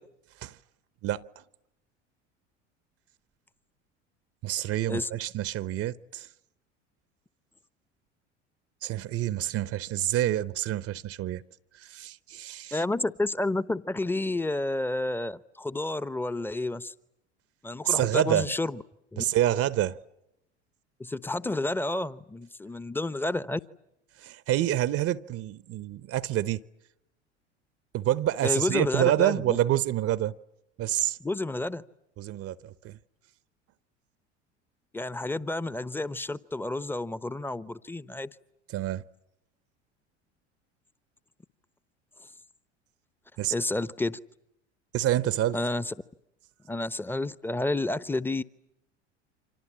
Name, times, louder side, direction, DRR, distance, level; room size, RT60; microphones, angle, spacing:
voice 1, 4.4-6.3 8.8-11.4 11.8-12.8 17.8-18.5 19.2-20.0 24.2-26.6 27.9-30.3 30.8-31.2 32.2-33.0 38.7-39.0 43.4-43.5 44.9-45.6, right 13 dB, 40° right, 1.0 m, -27 dB
voice 2, 12.7-16.9 17.6-18.8 19.1-19.3 21.0-23.6 28.4-29.6 31.2-31.8 34.9-38.3 43.5-44.2 45.5-45.9 46.7-48.4, left 2 dB, 5° left, 1.0 m, -30 dB
30.0 x 26.0 x 7.6 m
figure-of-eight pair, 75°, 35 cm